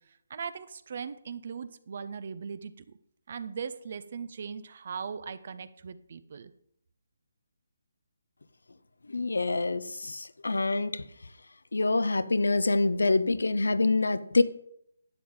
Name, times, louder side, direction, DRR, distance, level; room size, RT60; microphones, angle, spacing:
voice 1, 0.1-3.0 3.3-6.5, right 6 dB, 50° right, 14 dB, 0.8 m, -39 dB
voice 2, 9.1-11.0 11.7-14.4, left 3 dB, 75° left, 14 dB, 0.7 m, -26 dB
11.5 x 8.6 x 3.8 m, 0.73 s
figure-of-eight pair, 150°, 0 cm